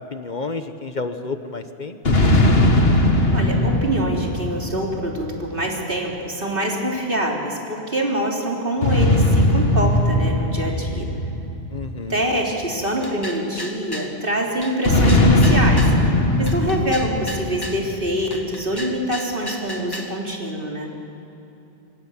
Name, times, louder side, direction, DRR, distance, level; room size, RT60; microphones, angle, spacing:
voice 1, 0.1-2.2 11.7-12.2, left 3 dB, 45° left, 8 dB, 1.2 m, -30 dB
sound 1, 2.1-5.7 8.8-12.5 14.9-18.3, left 1 dB, 70° left, 2.1 m, -19 dB
voice 2, 3.3-11.1 12.1-15.9 16.4-20.9, right 1 dB, 60° right, -1 dB, 3.8 m, -25 dB
sound 2, 13.0-14.1 14.6-16.0 16.5-17.8 18.3-20.2, left 1 dB, 20° left, 2.0 m, -34 dB
26.5 x 24.0 x 7.3 m, 3.0 s
omnidirectional pair, 1.0 m